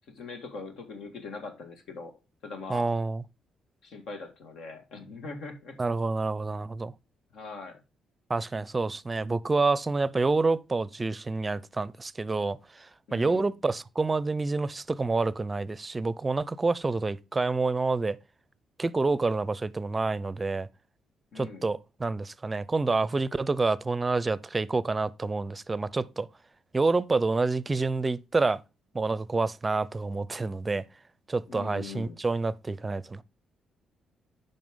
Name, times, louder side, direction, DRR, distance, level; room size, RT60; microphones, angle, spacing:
voice 1, 0.1-2.1 2.4-2.9 3.8-5.8 7.3-7.8 13.1-13.5 21.3-21.7 31.5-32.2, left 4 dB, 75° left, 2.0 m, -41 dB
voice 2, 2.7-3.2 5.8-6.9 8.3-18.2 18.8-20.7 21.4-26.3 26.7-28.6 28.9-30.8 31.3-33.2, right 3 dB, 25° right, 0.5 m, -28 dB
9.3 x 5.4 x 3.7 m
cardioid pair, 90°, 0 cm